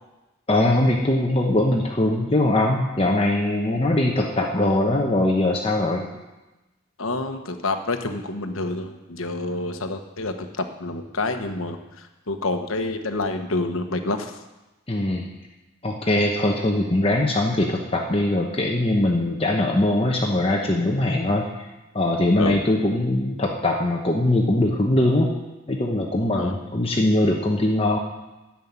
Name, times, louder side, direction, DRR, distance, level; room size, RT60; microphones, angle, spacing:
voice 1, 0.5-6.1 14.9-15.3 15.8-21.7 21.9-25.3 25.7-28.0, left 1 dB, 25° left, 1 dB, 1.0 m, -21 dB
voice 2, 7.0-14.3 22.4-22.6 26.3-26.6, left 2 dB, 80° left, 6 dB, 1.2 m, -28 dB
11.0 x 7.5 x 9.6 m, 1.1 s
head